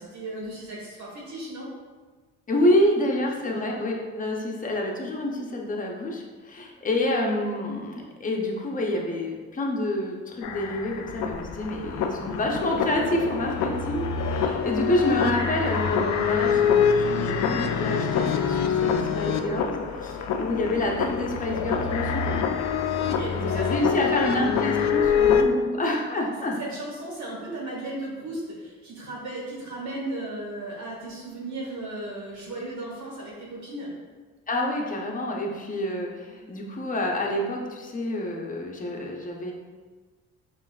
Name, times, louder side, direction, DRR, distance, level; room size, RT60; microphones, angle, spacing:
voice 1, 0.0-1.7 14.3-14.6 23.0-24.3 26.6-33.9, right 1 dB, 65° right, -4 dB, 1.4 m, -36 dB
voice 2, 2.5-22.3 23.4-26.6 34.5-39.5, left 1 dB, 25° left, 0 dB, 0.7 m, -28 dB
sound 1, 10.4-25.4, left 7 dB, 65° left, 0.4 m, -25 dB
5.3 x 2.5 x 2.4 m, 1.4 s
cardioid pair, 90°, 30 cm